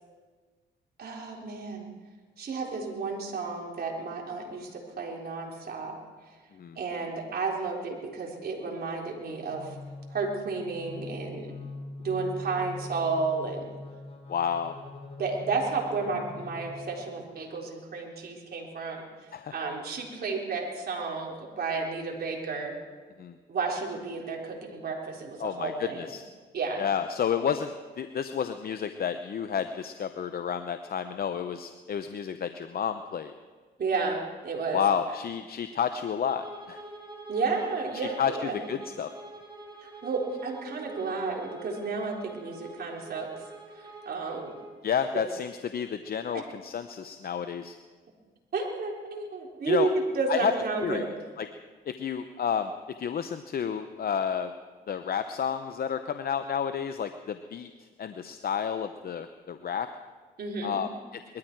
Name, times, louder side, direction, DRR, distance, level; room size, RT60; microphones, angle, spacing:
voice 1, 1.0-1.9 2.4-5.9 6.8-9.8 10.1-11.5 12.0-13.7 15.2-19.0 19.5-22.7 23.5-26.1 26.5-26.8 33.8-34.8 37.3-38.6 39.8-43.3 43.7-44.5 46.3-46.5 48.5-49.9 50.1-51.2 60.4-60.8, right 4 dB, 55° right, -1 dB, 4.0 m, -32 dB
sound 1, 9.4-17.3, left 3 dB, 35° left, 3.4 m, -43 dB
voice 2, 14.3-14.8 19.3-19.5 23.2-23.3 25.4-26.2 26.8-33.3 34.7-36.8 37.9-38.3 38.7-39.1 44.8-47.8 49.7-49.9 50.3-50.5 50.8-51.0 51.4-51.5 51.9-52.7 53.0-54.5 54.9-57.7 58.0-59.9 60.6-60.9, left 7 dB, 55° left, 9 dB, 0.8 m, -30 dB
Bowed string instrument, 36.3-44.8, right 2 dB, 25° right, 3.7 m, -46 dB
21.0 x 13.5 x 4.7 m, 1.4 s
supercardioid pair, 60°, 19 cm